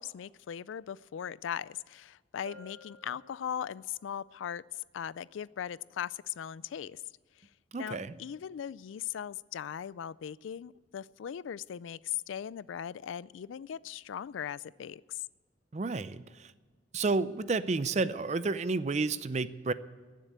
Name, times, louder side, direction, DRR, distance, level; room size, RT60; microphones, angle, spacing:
voice 1, 0.0-4.6 4.9-7.0 7.8-15.2, left 9 dB, 85° left, 21 dB, 0.3 m, -39 dB
Bell, 2.5-4.0, equal, 80° right, 3.0 m, -53 dB
voice 2, 7.7-8.2 15.7-16.5 16.9-19.7, right 3 dB, 35° right, 15 dB, 0.5 m, -31 dB
15.5 x 7.6 x 8.2 m, 1.4 s
head